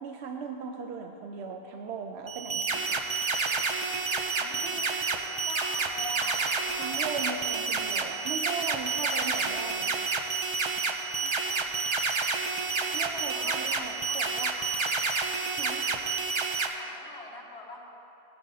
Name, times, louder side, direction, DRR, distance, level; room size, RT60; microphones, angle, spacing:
voice 1, 0.0-3.0 6.7-9.9 12.9-14.5 15.6-15.9, right 5 dB, 80° right, 3 dB, 0.9 m, -38 dB
sound 1, 2.3-16.7, right 4 dB, 35° right, 0.5 m, -29 dB
voice 2, 4.4-7.4 11.2-11.4 12.8-14.7 16.8-17.9, left 2 dB, 85° left, -3 dB, 1.9 m, -44 dB
15.5 x 10.0 x 2.7 m, 2.9 s
omnidirectional pair, 1.1 m